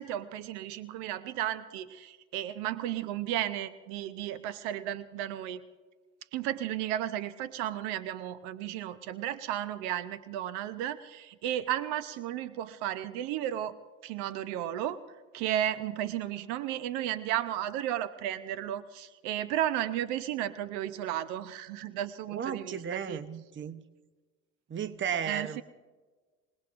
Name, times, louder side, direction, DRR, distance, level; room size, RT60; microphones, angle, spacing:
voice 1, 0.0-5.6 6.3-13.8 14.0-15.0 15.3-23.2 25.2-25.6, right 12 dB, 65° right, 14 dB, 0.9 m, -34 dB
voice 2, 22.3-23.8 24.7-25.6, right 7 dB, 25° right, 13 dB, 0.9 m, -34 dB
27.5 x 18.0 x 2.6 m, 1.3 s
hypercardioid pair, 70°, 43 cm